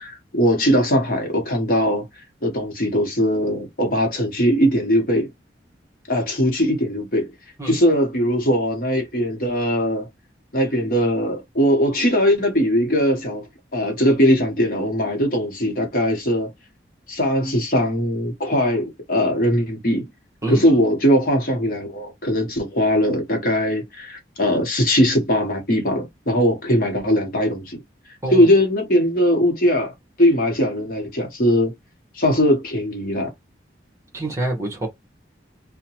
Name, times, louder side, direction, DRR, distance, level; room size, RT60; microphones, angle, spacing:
voice 1, 0.0-2.1 2.4-5.3 6.1-7.3 7.7-10.1 10.5-13.4 13.7-16.5 17.1-20.0 20.5-27.8 28.3-29.9 30.2-31.7 32.1-33.3, equal, 50° left, 0.9 m, -20 dB
voice 2, 34.1-34.9, right 1 dB, 15° right, 1.0 m, -26 dB
2.8 x 2.1 x 2.8 m
head